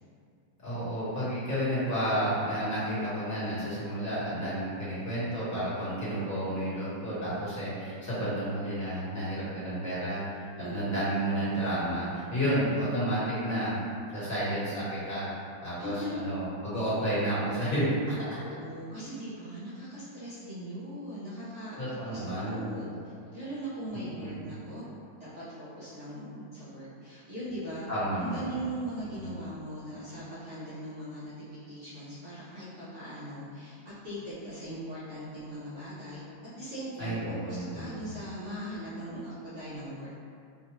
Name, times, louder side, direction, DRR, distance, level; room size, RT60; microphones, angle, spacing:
voice 1, 0.6-13.8 14.1-15.3 15.6-18.4 21.8-22.7 23.9-24.4 27.9-28.4 29.2-29.3 37.0-38.0, right 1 dB, 10° left, -13 dB, 1.0 m, -31 dB
voice 2, 15.8-16.2 18.4-24.8 25.2-27.9 28.2-31.3 31.7-36.2 36.5-40.1, right 1 dB, 50° right, -12 dB, 0.9 m, -40 dB
3.9 x 2.5 x 3.0 m, 2.4 s
omnidirectional pair, 2.2 m